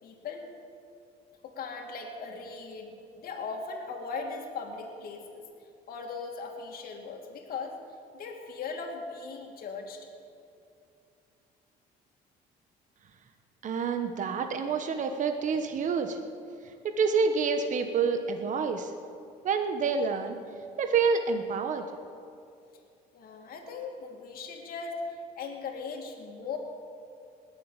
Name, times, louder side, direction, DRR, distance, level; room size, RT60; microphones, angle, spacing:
voice 1, 0.0-0.5 1.4-5.4 5.9-7.8 8.1-10.0 23.1-25.0 25.4-26.6, left 4 dB, 60° left, 1 dB, 2.5 m, -39 dB
voice 2, 13.6-16.2 16.8-18.9 19.4-20.4 20.8-21.8, right 5 dB, 50° right, 6 dB, 1.2 m, -28 dB
19.5 x 7.6 x 9.1 m, 2.6 s
cardioid pair, 110°, 17 cm